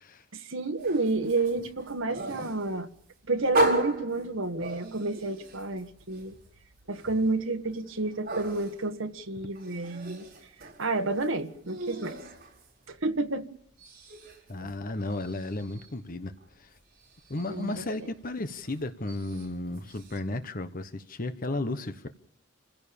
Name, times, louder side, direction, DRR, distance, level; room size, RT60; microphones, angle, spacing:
voice 1, 0.3-2.9 3.3-6.4 6.9-10.3 10.8-12.2 12.9-13.5 17.5-17.7, right 2 dB, 80° right, 1.6 m, -30 dB
sound 1, 0.8-13.3 13.6-20.2, right 2 dB, 45° right, 4.5 m, -36 dB
voice 2, 14.5-16.8 17.3-22.1, left 2 dB, 45° left, 1.1 m, -34 dB
28.0 x 16.0 x 7.0 m
head